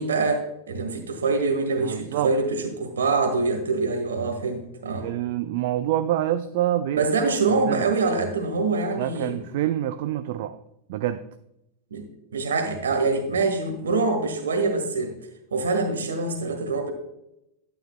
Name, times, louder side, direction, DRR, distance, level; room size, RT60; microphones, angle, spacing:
voice 1, 0.0-5.1 7.0-9.4 11.9-12.0 12.3-15.1 15.5-16.9, right 3 dB, 65° right, 6 dB, 1.6 m, -25 dB
voice 2, 1.8-2.3 5.0-7.1 7.5-7.9 9.0-10.6 10.9-11.2, right 12 dB, 50° right, 11 dB, 0.4 m, -26 dB
11.5 x 9.1 x 2.2 m, 0.82 s
figure-of-eight pair, 90°, 0 cm